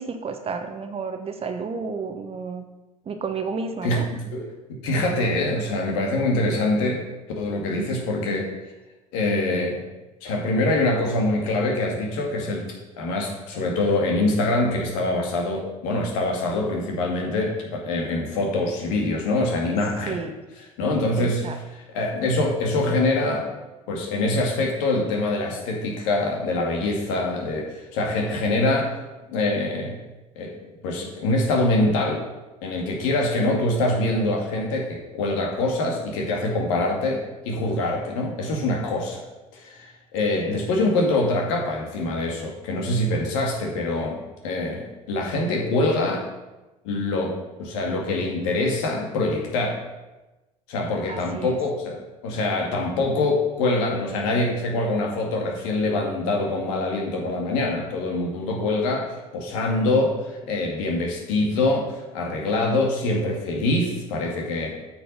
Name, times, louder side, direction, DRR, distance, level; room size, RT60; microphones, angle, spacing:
voice 1, 0.0-2.6 3.1-4.1 20.1-20.3 21.2-21.6 40.3-40.7 51.1-51.6, right 5 dB, 30° right, 7 dB, 1.1 m, -31 dB
voice 2, 3.8-4.5 4.8-7.0 7.4-8.5 9.1-9.8 10.2-20.2 20.6-23.5 23.9-30.0 30.4-30.5 30.8-32.2 32.6-39.2 39.5-46.3 46.8-47.3 47.6-49.8 50.7-52.0 52.2-64.7, left 2 dB, 65° left, 0 dB, 2.0 m, -24 dB
8.6 x 6.3 x 5.5 m, 1.1 s
figure-of-eight pair, 60°, 18 cm